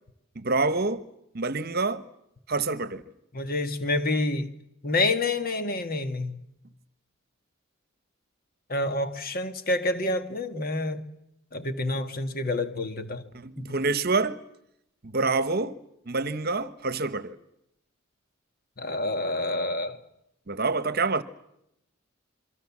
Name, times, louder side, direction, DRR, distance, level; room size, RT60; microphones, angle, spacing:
voice 1, 0.3-1.0 1.3-2.0 2.5-3.0 13.3-14.4 15.0-15.8 16.1-17.4 20.5-21.2, right 3 dB, 50° right, 1.1 m, -27 dB
voice 2, 3.3-4.5 4.8-6.4 8.7-11.0 11.5-13.3 18.8-20.0, left 2 dB, 45° left, 1.8 m, -28 dB
27.5 x 23.5 x 7.3 m
head